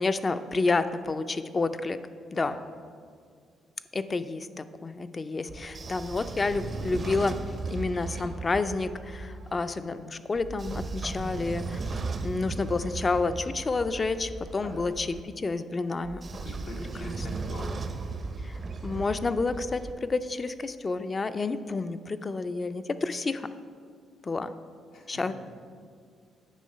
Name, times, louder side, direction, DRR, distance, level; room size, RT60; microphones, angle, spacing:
voice 1, 0.0-2.0 2.3-2.6 3.9-7.4 7.7-12.0 12.2-16.4 17.2-17.3 18.4-23.5 24.2-24.5 25.1-25.3, left 3 dB, 30° left, 12 dB, 0.4 m, -29 dB
Train / Sliding door, 5.5-9.5 10.3-15.2 16.0-19.9, right 3 dB, 40° right, 0.5 m, -36 dB
voice 2, 16.4-17.7 24.9-25.3, left 2 dB, 85° left, -2 dB, 1.2 m, -42 dB
9.3 x 3.8 x 5.5 m, 2.1 s
cardioid pair, 90°, 0 cm